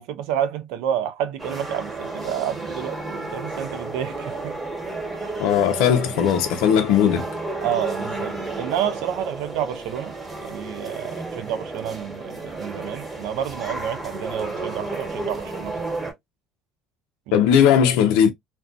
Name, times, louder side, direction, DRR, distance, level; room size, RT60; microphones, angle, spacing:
voice 1, 0.0-4.6 7.6-10.1 10.4-15.9 17.3-17.4, right 9 dB, 85° right, 0.5 m, -29 dB
sound 1, 1.4-16.1, right 2 dB, 20° right, 1.2 m, -32 dB
voice 2, 5.4-7.3 17.3-18.3, left 8 dB, 85° left, 0.5 m, -18 dB
2.5 x 2.2 x 2.4 m
supercardioid pair, 100°, 0 cm